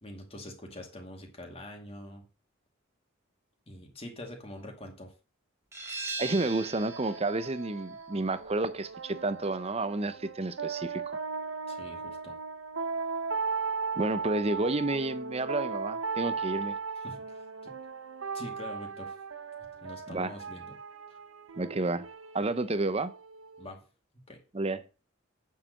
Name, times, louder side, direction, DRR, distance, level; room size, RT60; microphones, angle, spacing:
voice 1, 0.0-2.2 3.7-5.1 11.7-12.3 17.0-17.7 18.3-19.2 19.8-20.8 21.1-21.2 23.6-23.8 24.3-24.4, left 1 dB, 30° left, 2.4 m, -45 dB
sound 1, 5.7-11.1, right 3 dB, 15° right, 2.1 m, -42 dB
voice 2, 6.2-11.2 14.0-16.8 20.1-20.3 21.6-22.1 22.3-23.1 24.5-25.0, right 2 dB, 30° right, 0.7 m, -30 dB
sound 2, 6.2-23.7, right 5 dB, 75° right, 1.0 m, -37 dB
9.0 x 6.6 x 6.5 m
head